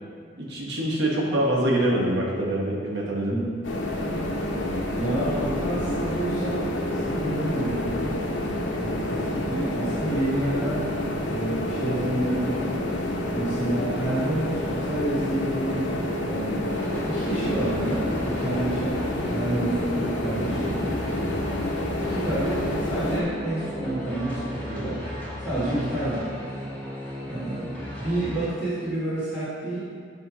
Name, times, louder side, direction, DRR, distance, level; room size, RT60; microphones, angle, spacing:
voice 1, 0.4-3.3 13.2-13.3 21.1-21.4 25.7-25.8, right 1 dB, 65° right, -5 dB, 1.4 m, -25 dB
voice 2, 3.3-3.7 5.0-8.2 8.8-11.0 11.3-12.8 13.3-15.9 16.2-16.8 17.0-19.0 19.3-21.3 22.0-25.0 25.4-26.3 27.3-29.8, right 1 dB, 10° right, -14 dB, 1.8 m, -29 dB
sound 1, 3.6-23.2, left 1 dB, 90° left, 0.9 m, -28 dB
sound 2, 16.6-28.5, equal, 10° left, 1.4 m, -36 dB
8.5 x 3.4 x 6.2 m, 2.1 s
head